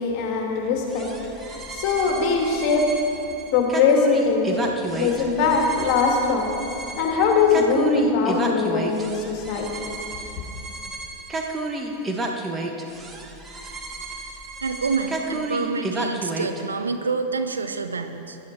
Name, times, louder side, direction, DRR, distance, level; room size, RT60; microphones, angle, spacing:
voice 1, 0.0-3.0 3.5-6.6 7.0-9.8 10.4-10.5, left 4 dB, 40° left, 1 dB, 2.3 m, -22 dB
sound 1, 0.9-16.6, right 2 dB, 15° right, 1.3 m, -32 dB
voice 2, 14.6-18.4, right 4 dB, 75° right, 8 dB, 0.7 m, -27 dB
17.5 x 11.0 x 4.6 m, 2.9 s
figure-of-eight pair, 90°, 0 cm